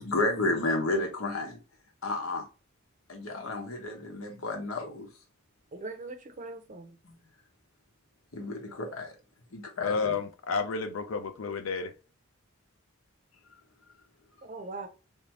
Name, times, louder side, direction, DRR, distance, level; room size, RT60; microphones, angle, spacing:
voice 1, 0.0-1.6 2.0-2.4 3.1-5.1 7.1-7.2 8.3-9.1 9.5-10.2, left 2 dB, 85° left, 1.0 m, -31 dB
voice 2, 5.7-7.0 14.4-14.9, right 3 dB, 40° right, 0.6 m, -40 dB
voice 3, 9.8-11.9, left 5 dB, 70° left, 0.4 m, -31 dB
3.2 x 2.7 x 3.1 m
head